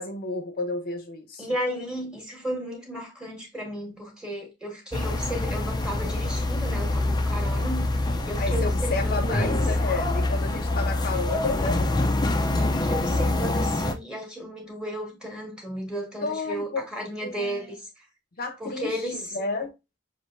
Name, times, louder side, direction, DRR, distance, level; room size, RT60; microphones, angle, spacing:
voice 1, 0.0-1.4 8.4-11.9 16.2-16.8 17.2-17.7 18.4-19.7, left 3 dB, 50° left, 0.8 m, -31 dB
voice 2, 1.4-9.6 12.6-18.0 18.6-19.3, equal, 5° right, 1.6 m, -34 dB
sound 1, 4.9-13.9, left 2 dB, 20° left, 0.5 m, -25 dB
6.3 x 2.9 x 2.6 m
head